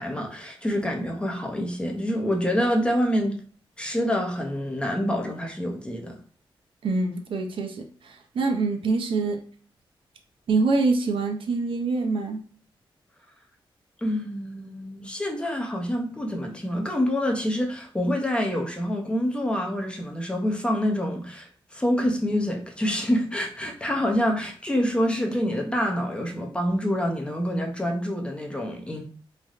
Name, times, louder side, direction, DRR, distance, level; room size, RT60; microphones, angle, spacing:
voice 1, 0.0-3.4 3.8-6.2 14.0-29.0, equal, 10° left, 0.5 m, -26 dB
voice 2, 6.8-9.4 10.5-12.4, right 3 dB, 70° right, 0.5 m, -25 dB
3.2 x 2.5 x 2.4 m
wide cardioid pair, 140°, 9 cm